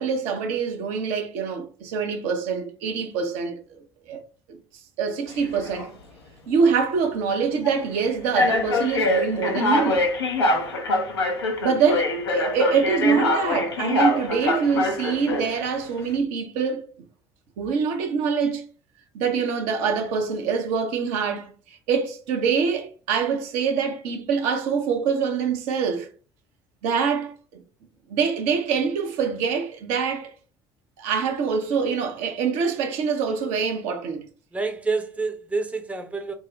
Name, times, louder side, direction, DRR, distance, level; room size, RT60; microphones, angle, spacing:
voice 1, 0.0-3.8 4.1-4.2 4.5-4.6 5.0-5.9 6.5-10.0 11.6-16.9 17.6-18.6 19.1-26.1 26.8-27.6 28.1-30.3 31.0-34.3, right 6 dB, 60° right, 0.7 m, -25 dB
sound 1, 5.3-5.9 6.6-6.8 7.6-7.8 8.4-15.6, left 2 dB, 80° left, 0.6 m, -24 dB
voice 2, 34.5-36.3, right 3 dB, 10° right, 0.7 m, -28 dB
3.7 x 2.0 x 3.9 m
figure-of-eight pair, 60°, 13 cm